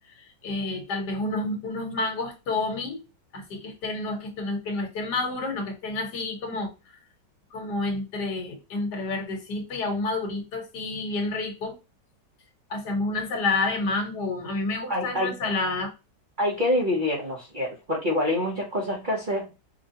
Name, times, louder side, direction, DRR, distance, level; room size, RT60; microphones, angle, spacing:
voice 1, 0.4-3.0 3.3-6.7 7.5-11.7 12.7-15.9, left 3 dB, 65° left, 1.5 m, -29 dB
voice 2, 14.9-15.4 16.4-19.5, left 1 dB, 50° right, 0.6 m, -26 dB
5.2 x 2.2 x 2.7 m
omnidirectional pair, 1.9 m